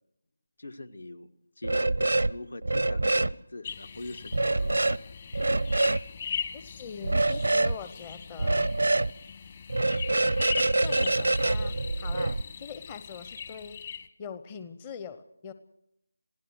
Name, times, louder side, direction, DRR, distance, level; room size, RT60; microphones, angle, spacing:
voice 1, 0.6-1.3 1.6-5.0, left 2 dB, 70° left, 10 dB, 1.7 m, -42 dB
Screech bass, 1.6-2.3 2.6-3.3 4.3-5.0 5.3-6.0 7.0-7.7 8.4-9.1 9.7-12.4, right 2 dB, 75° right, 0.7 m, -25 dB
sound 1, 3.6-14.1, left 7 dB, 35° left, 1.4 m, -40 dB
voice 2, 6.5-8.7 10.8-13.8 14.2-15.5, left 6 dB, 20° left, 11 dB, 0.8 m, -42 dB
27.0 x 17.0 x 6.3 m, 0.80 s
figure-of-eight pair, 160°, 0 cm